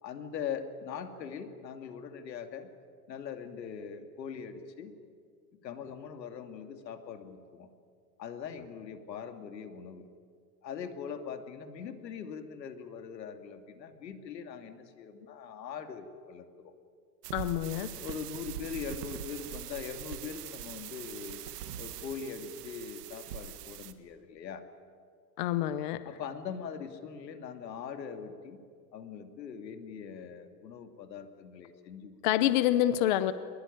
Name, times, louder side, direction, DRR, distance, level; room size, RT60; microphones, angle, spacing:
voice 1, 0.0-2.7 3.1-4.9 5.6-7.7 8.2-10.1 10.6-16.7 18.0-21.4 21.8-24.6 26.0-28.6 28.9-32.2, left 7 dB, 90° left, 7 dB, 2.7 m, -41 dB
sound 1, 17.2-23.9, right 11 dB, 70° right, 1.8 m, -42 dB
voice 2, 17.3-17.9 25.4-26.1 32.2-33.3, left 13 dB, 30° left, 13 dB, 0.6 m, -27 dB
22.0 x 21.5 x 9.9 m, 2.1 s
supercardioid pair, 165°, 49 cm